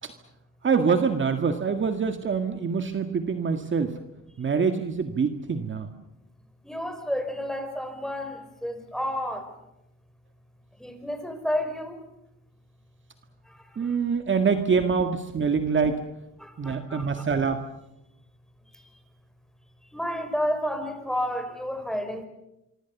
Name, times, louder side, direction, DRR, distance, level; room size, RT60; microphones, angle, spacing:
voice 1, 0.6-3.9 4.4-5.9 13.8-16.0 16.6-17.6, right 5 dB, 40° right, 7 dB, 1.9 m, -25 dB
voice 2, 6.6-9.4 10.8-12.0 16.4-17.2 19.9-22.2, equal, ahead, 8 dB, 5.0 m, -31 dB
25.0 x 25.0 x 7.2 m, 0.91 s
cardioid pair, 90°, 30 cm